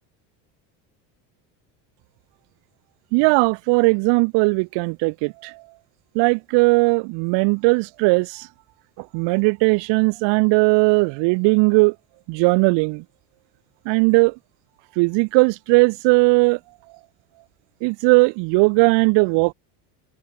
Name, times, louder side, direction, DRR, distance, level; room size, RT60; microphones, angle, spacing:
voice 1, 3.1-5.5 6.1-8.5 9.1-11.9 12.3-13.0 13.9-14.3 15.0-16.6 17.8-19.5, right 29 dB, 75° right, 2.5 m, -18 dB
cardioid pair, 145°, 44 cm